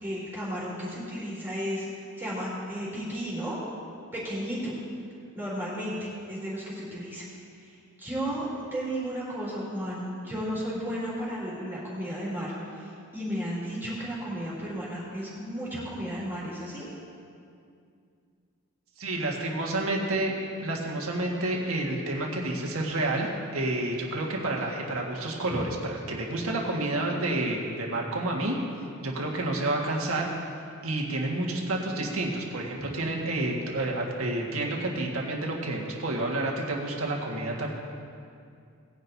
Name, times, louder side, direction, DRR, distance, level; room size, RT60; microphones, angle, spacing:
voice 1, 0.0-3.6 4.1-4.7 5.3-7.3 7.6-7.7 8.0-16.9, equal, 10° right, -8 dB, 3.3 m, -34 dB
voice 2, 19.0-20.3 20.6-28.6 29.0-30.3 30.8-37.7, right 2 dB, 80° right, -1 dB, 1.8 m, -29 dB
19.0 x 10.5 x 2.8 m, 2.4 s
head